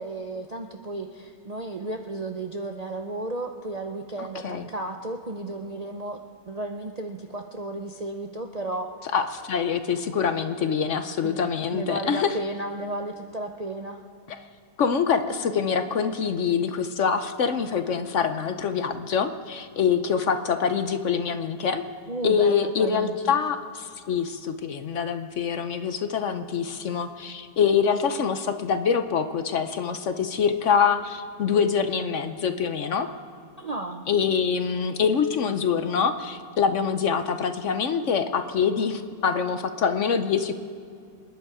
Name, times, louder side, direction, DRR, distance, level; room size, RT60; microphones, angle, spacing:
voice 1, 0.0-6.2 6.5-8.9 11.2-14.0 22.1-23.4 33.6-34.0, right 2 dB, 40° right, 3 dB, 0.5 m, -33 dB
voice 2, 4.2-4.7 9.1-12.3 14.8-21.8 22.2-33.1 34.1-40.5, left 6 dB, 60° left, 9 dB, 1.0 m, -25 dB
27.0 x 10.5 x 4.9 m, 2.4 s
omnidirectional pair, 1.6 m